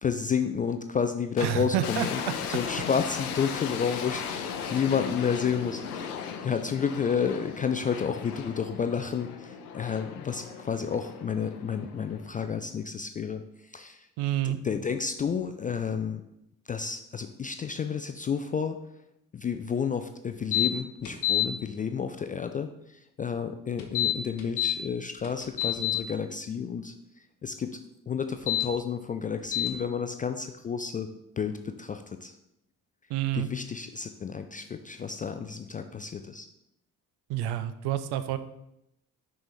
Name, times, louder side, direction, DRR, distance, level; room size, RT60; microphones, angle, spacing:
voice 1, 0.0-2.2 2.5-6.2 6.4-13.4 13.7-14.1 14.4-16.2 16.7-18.8 19.3-26.9 27.4-27.7 28.1-31.1 31.4-32.3 33.3-36.5, left 6 dB, 20° left, 7 dB, 0.3 m, -31 dB
sound 1, 1.4-12.6, left 7 dB, 80° left, 0.6 m, -37 dB
voice 2, 1.4-2.1 4.6-4.7 14.2-14.6 33.1-33.5 37.3-38.4, right 12 dB, 60° right, 12 dB, 0.6 m, -28 dB
sound 2, 20.5-20.7 21.1-21.5 23.8-24.8 25.2-26.0 28.3-28.7 29.5-29.7, left 13 dB, 60° left, 1.2 m, -26 dB
6.1 x 4.2 x 4.6 m, 0.81 s
figure-of-eight pair, 40°, 45 cm